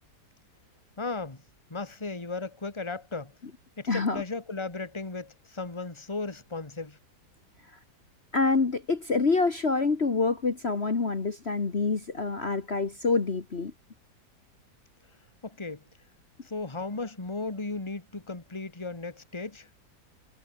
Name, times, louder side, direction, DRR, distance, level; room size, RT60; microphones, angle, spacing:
voice 1, 1.0-1.4 1.7-3.3 3.8-7.0 15.4-15.8 16.4-19.7, left 3 dB, 15° left, 2.2 m, -36 dB
voice 2, 3.9-4.2 7.7-7.8 8.3-13.7, left 4 dB, 40° left, 2.0 m, -26 dB
omnidirectional pair, 1.8 m